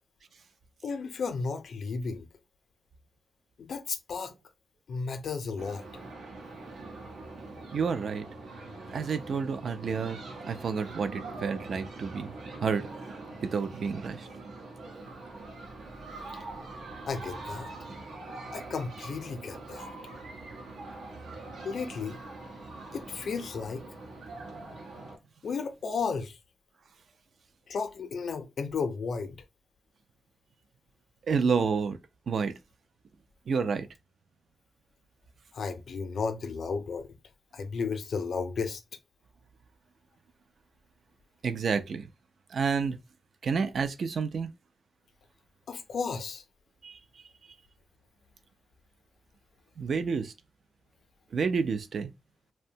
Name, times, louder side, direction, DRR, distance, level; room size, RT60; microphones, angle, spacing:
voice 1, 0.8-2.3 3.6-4.3 4.9-5.8 17.1-17.7 18.5-19.9 21.6-22.2 22.9-23.8 25.4-26.4 27.7-29.4 35.5-37.1 37.5-38.8 45.7-46.4, left 5 dB, 65° left, 0.4 m, -33 dB
sound 1, 5.6-25.2, right 2 dB, 85° right, 0.7 m, -43 dB
voice 2, 7.7-8.3 8.9-12.3 12.6-12.9 13.4-14.3 31.3-32.0 32.3-32.5 33.5-33.9 41.4-42.1 42.5-43.0 43.4-44.5 46.8-47.0 49.8-50.3 51.3-52.1, right 5 dB, 60° right, 0.3 m, -29 dB
2.6 x 2.1 x 2.6 m
cardioid pair, 105°, 0 cm